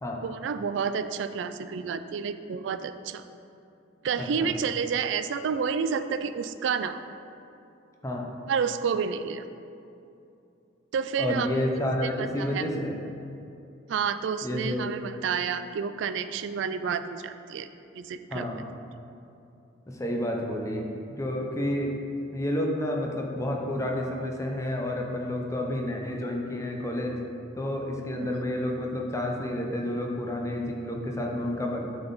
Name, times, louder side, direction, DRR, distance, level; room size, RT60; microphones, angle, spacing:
voice 1, 0.2-3.2 4.0-7.0 8.5-9.4 10.9-11.5 12.0-12.6 13.9-17.7 18.0-18.5 28.2-28.4, right 6 dB, 65° right, 11 dB, 0.3 m, -30 dB
voice 2, 4.2-4.5 8.0-8.3 11.2-13.0 14.4-14.9 18.3-18.6 19.9-20.9 21.2-22.0 22.3-27.2 27.6-31.8, left 1 dB, 15° left, 0 dB, 0.6 m, -30 dB
8.5 x 4.0 x 4.0 m, 2.7 s
head